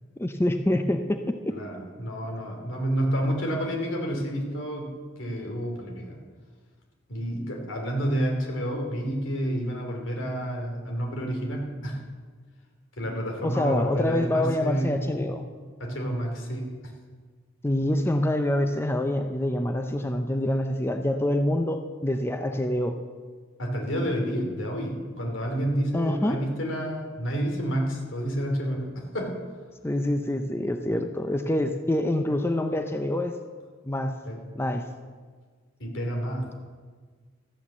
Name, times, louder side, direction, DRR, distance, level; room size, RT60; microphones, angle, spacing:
voice 1, 0.2-1.3 13.4-15.5 17.6-23.0 25.9-26.4 29.8-33.4 33.9-34.2 34.6-34.8, left 1 dB, 10° left, 7 dB, 0.5 m, -26 dB
voice 2, 1.5-6.2 7.1-12.0 13.0-15.0 15.8-16.9 23.6-29.4 34.2-34.4 35.8-36.5, equal, 85° left, 2 dB, 2.9 m, -29 dB
13.5 x 8.5 x 7.4 m, 1.5 s
head